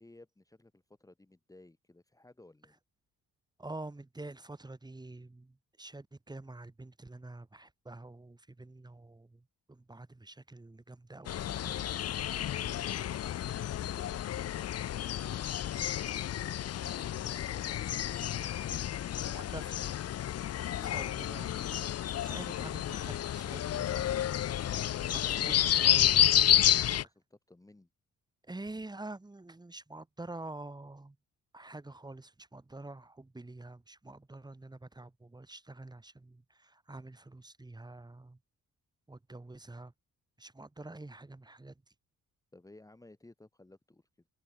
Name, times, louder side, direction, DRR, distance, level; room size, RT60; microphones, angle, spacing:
voice 1, 0.0-2.8 26.6-27.9 42.5-44.1, left 2 dB, 10° left, 2.6 m, -57 dB
voice 2, 3.6-11.9 19.2-19.8 20.8-21.6 22.1-24.2 25.0-26.2 28.4-31.2 31.5-38.4 39.1-39.9 40.4-41.8, right 2 dB, 10° right, 3.3 m, -47 dB
sound 1, 11.3-27.0, left 11 dB, 45° left, 0.6 m, -30 dB
wide cardioid pair, 160°, 34 cm